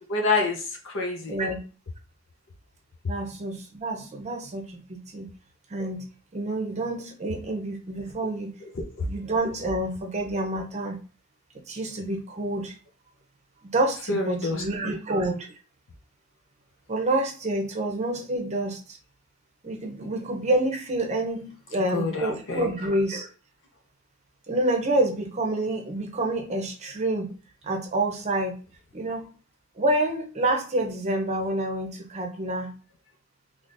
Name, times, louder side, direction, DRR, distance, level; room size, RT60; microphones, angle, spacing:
voice 1, 0.1-1.4 9.0-9.1 14.1-15.0 21.9-22.7, left 3 dB, 60° left, 2 dB, 0.7 m, -27 dB
voice 2, 1.3-1.6 3.1-5.3 5.7-6.0 6.3-8.5 9.0-11.0 11.7-12.8 13.6-15.5 16.9-19.0 19.6-23.3 24.5-27.3 27.6-28.6 28.9-29.3 29.8-32.7, right 1 dB, 30° right, 2 dB, 0.7 m, -28 dB
3.8 x 3.2 x 2.6 m, 0.36 s
head